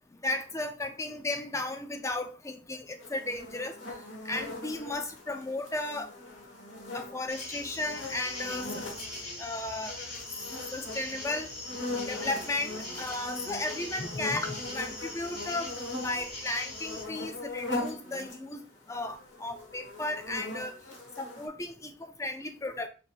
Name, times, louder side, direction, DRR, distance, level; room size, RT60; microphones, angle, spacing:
voice 1, 0.2-3.7 4.2-6.1 6.9-8.8 9.4-10.0 10.7-11.5 12.1-15.7 16.0-18.6 18.9-20.8 21.2-22.9, left 2 dB, 15° left, 7 dB, 0.4 m, -34 dB
sound 1, 3.0-9.5 9.9-18.5 18.8-21.5, left 2 dB, 80° left, 1.3 m, -40 dB
Bugs Chirping In Evening, 7.3-17.0, left 2 dB, 55° left, 1.6 m, -42 dB
5.0 x 3.9 x 2.4 m, 0.37 s
head